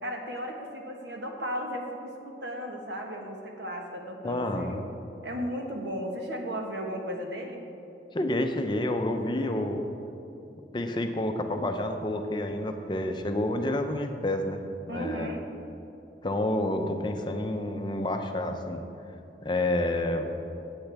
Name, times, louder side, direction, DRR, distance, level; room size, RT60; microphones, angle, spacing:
voice 1, 0.0-4.8 5.2-7.7 14.9-15.4, equal, 85° right, 2 dB, 1.3 m, -35 dB
voice 2, 4.2-4.9 8.1-9.8 10.7-14.6 14.9-15.3 16.2-18.8 19.4-20.3, left 1 dB, 25° left, 5 dB, 0.6 m, -29 dB
14.0 x 8.9 x 3.5 m, 2.9 s
head